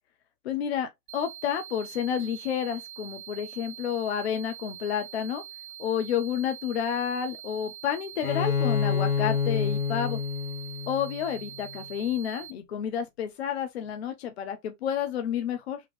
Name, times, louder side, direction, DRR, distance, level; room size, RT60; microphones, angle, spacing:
voice 1, 0.4-5.4 5.8-10.2 10.9-15.8, left 9 dB, 50° left, 0.6 m, -30 dB
sound 1, 1.1-12.5, right 12 dB, 45° right, 1.0 m, -44 dB
Bowed string instrument, 8.2-11.8, left 6 dB, 85° left, 0.6 m, -28 dB
3.6 x 2.9 x 3.2 m
figure-of-eight pair, 105°, 43 cm